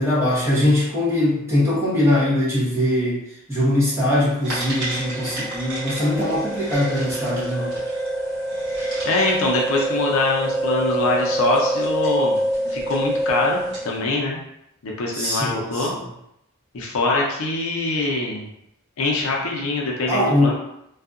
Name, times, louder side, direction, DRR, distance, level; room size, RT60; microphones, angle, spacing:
voice 1, 0.0-3.2 3.5-7.7 15.1-16.1 20.1-20.5, left 1 dB, 10° right, -7 dB, 0.8 m, -21 dB
sound 1, 4.4-14.0, right 1 dB, 55° right, 1.2 m, -26 dB
voice 2, 9.0-12.4 12.7-14.4 14.8-15.9 16.7-18.5 19.0-20.6, left 2 dB, 65° left, -1 dB, 0.5 m, -23 dB
2.7 x 2.3 x 2.4 m, 0.80 s
head